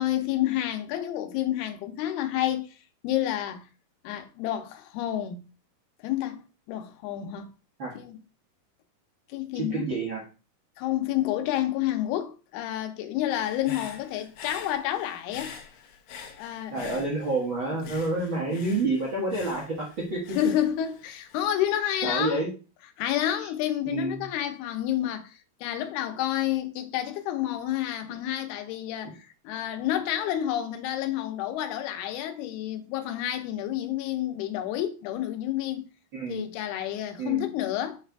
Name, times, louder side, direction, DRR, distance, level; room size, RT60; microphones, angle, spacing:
voice 1, 0.0-2.7 3.0-3.6 4.0-5.4 6.0-7.5 8.0-8.2 9.3-9.9 10.8-15.6 16.4-17.0 20.4-22.4 23.0-29.2 29.4-35.8 36.3-38.0, left 12 dB, 90° left, 2.8 m, -29 dB
voice 2, 9.5-10.2 16.7-20.4 22.0-22.5 23.8-24.3 36.1-36.5 37.2-37.4, right 2 dB, 50° right, 1.6 m, -29 dB
Human voice / Breathing, 13.3-17.5 17.8-21.4, left 6 dB, 70° left, 1.9 m, -45 dB
7.6 x 3.3 x 4.6 m
omnidirectional pair, 4.4 m